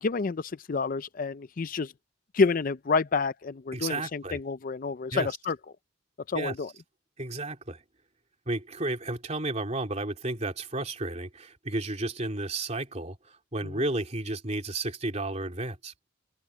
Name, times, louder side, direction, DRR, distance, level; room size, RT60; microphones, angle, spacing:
voice 1, 0.0-1.9 2.3-5.6 6.3-6.7 13.6-13.8, left 4 dB, 45° left, 0.4 m, -29 dB
voice 2, 3.7-4.4 5.1-5.3 6.3-6.5 7.2-7.8 8.5-15.9, right 2 dB, 35° right, 3.2 m, -32 dB
open air
head